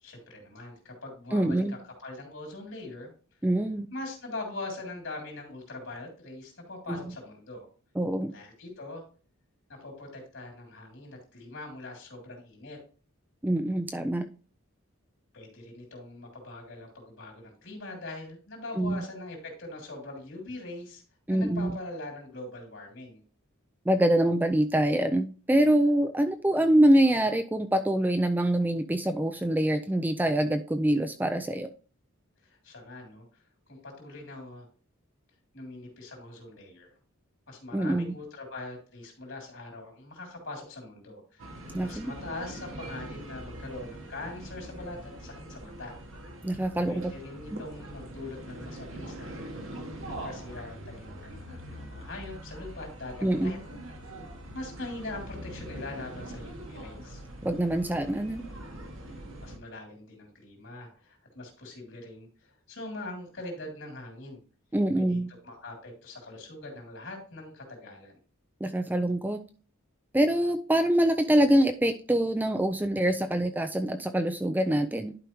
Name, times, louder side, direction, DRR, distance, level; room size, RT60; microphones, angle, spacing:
voice 1, 0.0-3.1 3.9-7.7 8.3-9.0 9.7-12.8 15.3-21.0 21.3-23.2 32.4-33.4 33.7-34.7 35.5-36.9 37.5-41.5 41.8-46.0 46.9-49.5 50.1-53.6 54.5-57.2 59.1-62.3 62.7-64.4 65.0-68.1, left 2 dB, 65° left, 1 dB, 3.1 m, -42 dB
voice 2, 1.3-1.8 3.4-3.9 6.9-7.0 8.0-8.3 13.4-14.2 18.8-19.0 21.3-21.8 23.9-31.7 37.7-38.1 41.7-42.1 46.4-47.1 47.5-47.6 53.2-53.5 57.4-58.4 64.7-65.3 68.6-69.4 70.1-75.2, right 1 dB, 10° right, 7 dB, 0.3 m, -25 dB
sound 1, 41.4-59.6, right 1 dB, 65° right, 1.3 m, -43 dB
11.0 x 4.9 x 3.0 m, 0.38 s
head